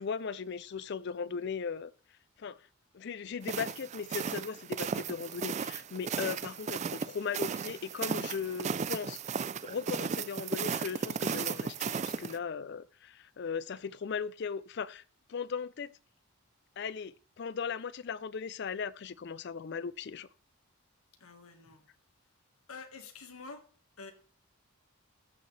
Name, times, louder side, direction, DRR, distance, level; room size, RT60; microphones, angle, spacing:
voice 1, 0.0-1.9 2.4-2.6 2.9-9.2 9.6-15.0 15.3-15.9 16.8-20.3, left 6 dB, 50° left, 0.4 m, -38 dB
sound 1, 3.4-12.4, right 6 dB, 30° right, 0.3 m, -35 dB
voice 2, 21.2-21.9 22.7-23.7 24.0-24.1, left 4 dB, 75° left, 1.5 m, -47 dB
14.5 x 6.4 x 3.2 m
head